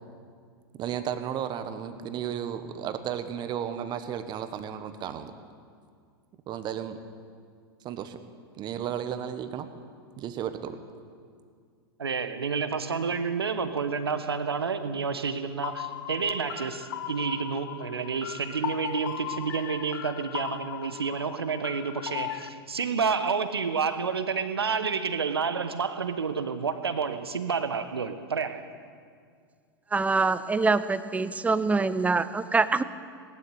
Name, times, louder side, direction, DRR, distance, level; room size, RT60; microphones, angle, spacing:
voice 1, 0.8-5.3 6.5-7.0 7.8-8.2 8.6-9.7 10.2-10.8, right 9 dB, 35° right, 1.3 m, -33 dB
voice 2, 12.0-28.7, right 5 dB, 90° right, 1.1 m, -29 dB
sound 1, 15.6-22.5, left 12 dB, 65° left, 0.7 m, -37 dB
voice 3, 29.9-32.8, right 4 dB, 10° right, 0.7 m, -24 dB
18.0 x 12.0 x 6.7 m
hypercardioid pair, 100°, 13 cm